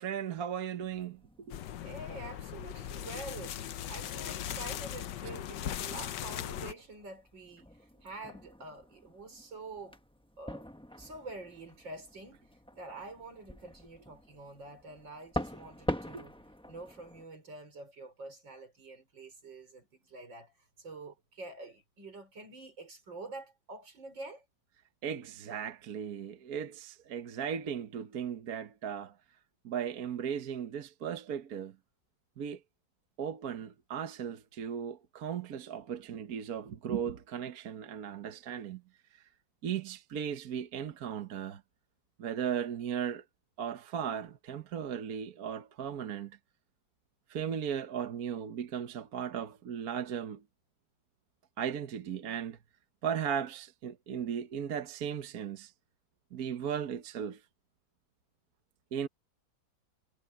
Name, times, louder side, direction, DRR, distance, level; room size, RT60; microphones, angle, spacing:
voice 1, 0.0-1.5 16.1-16.3 25.0-29.1 29.6-31.7 32.4-32.6 33.2-38.8 39.6-41.6 42.2-43.2 43.6-46.3 47.3-50.4 51.6-52.6 53.0-55.7 56.3-57.4 58.9-59.1, right 8 dB, 55° right, 1.4 m, -36 dB
sound 1, 0.8-17.2, left 1 dB, 5° left, 0.7 m, -45 dB
sound 2, 1.5-6.7, left 11 dB, 70° left, 1.4 m, -39 dB
voice 2, 1.8-10.0 10.4-10.7 11.0-12.4 12.8-16.3 16.7-24.4, right 2 dB, 75° right, 6.1 m, -47 dB
omnidirectional pair, 2.0 m